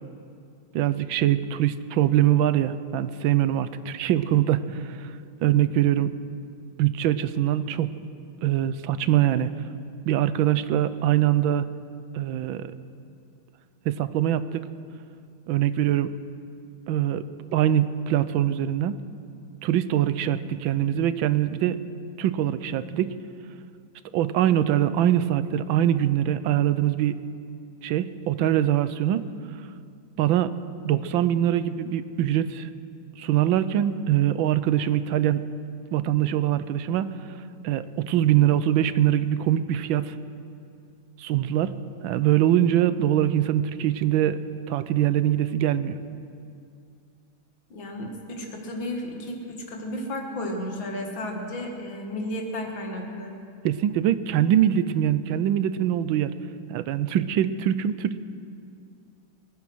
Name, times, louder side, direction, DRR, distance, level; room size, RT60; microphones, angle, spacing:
voice 1, 0.7-5.1 5.4-6.1 6.8-7.9 8.4-9.5 10.1-11.7 12.1-12.7 13.8-14.6 15.5-16.1 16.9-17.2 17.5-19.0 19.6-21.8 22.2-23.1 24.1-27.2 27.8-29.3 30.2-30.5 30.8-32.7 33.2-35.4 35.9-37.1 37.6-40.1 41.2-41.7 42.0-44.4 44.7-46.0 53.6-56.3 56.7-58.2, right 11 dB, 90° right, 13 dB, 1.4 m, -23 dB
voice 2, 47.7-53.3, left 1 dB, 85° left, 2 dB, 2.7 m, -33 dB
21.5 x 9.8 x 6.2 m, 2.4 s
omnidirectional pair, 2.1 m